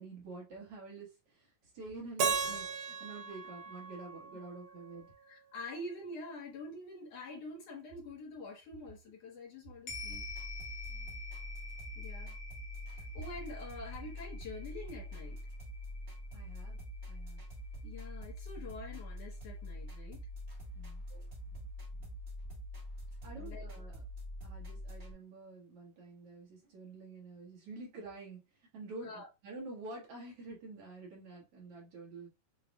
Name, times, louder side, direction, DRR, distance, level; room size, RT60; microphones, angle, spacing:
voice 1, 0.0-5.1 10.9-11.2 16.3-16.8 17.1-17.4 20.7-21.0 23.2-24.0 24.4-28.4 28.7-32.3, right 3 dB, 55° right, 2.0 m, -48 dB
Keyboard (musical), 2.2-5.2, right 5 dB, 80° right, 1.4 m, -36 dB
voice 2, 5.2-10.2 12.0-12.4 12.9-15.4 17.8-20.3 21.1-21.6 21.9-22.1 23.3-23.7 29.0-29.3, left 2 dB, 65° left, 1.9 m, -46 dB
sound 1, 9.9-18.4 18.8-18.9, left 3 dB, 80° left, 1.2 m, -49 dB
sound 2, 9.9-25.1, left 1 dB, 35° right, 1.1 m, -45 dB
7.1 x 2.4 x 2.3 m
omnidirectional pair, 3.8 m